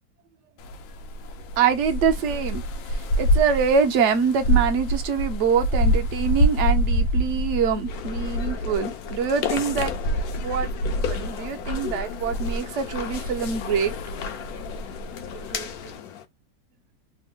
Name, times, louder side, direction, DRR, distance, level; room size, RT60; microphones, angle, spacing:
sound 1, 0.6-16.0, equal, 90° left, 1.3 m, -27 dB
voice 1, 1.6-2.6 3.2-9.9 10.4-10.7 11.1-13.9 15.3-15.9, right 6 dB, 60° right, 0.8 m, -24 dB
sound 2, 7.9-16.3, left 9 dB, 70° left, 1.0 m, -35 dB
3.4 x 2.1 x 3.6 m
omnidirectional pair, 2.0 m